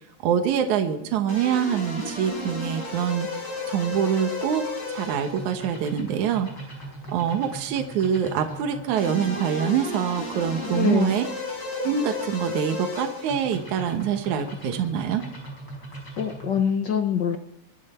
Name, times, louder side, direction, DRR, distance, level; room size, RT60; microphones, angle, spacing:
voice 1, 0.2-3.3 3.7-4.6 4.9-6.5 7.1-11.3 11.8-15.2, right 8 dB, 80° right, 5 dB, 2.6 m, -25 dB
sound 1, 1.3-16.6, left 2 dB, 35° left, 5.6 m, -35 dB
voice 2, 10.6-11.2 16.2-17.4, left 8 dB, 65° left, 6 dB, 1.1 m, -24 dB
23.5 x 12.0 x 4.4 m, 0.84 s
omnidirectional pair, 3.4 m